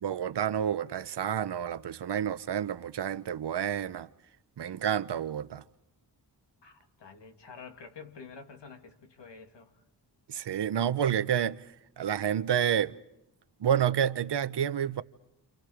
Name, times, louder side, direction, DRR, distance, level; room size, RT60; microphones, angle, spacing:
voice 1, 0.0-4.1 4.6-5.6 10.3-11.6 12.0-12.9 13.6-15.0, right 9 dB, 75° right, 0.8 m, -29 dB
voice 2, 6.6-9.8, left 5 dB, 80° left, 2.6 m, -49 dB
29.0 x 28.5 x 5.0 m
wide cardioid pair, 175°, 42 cm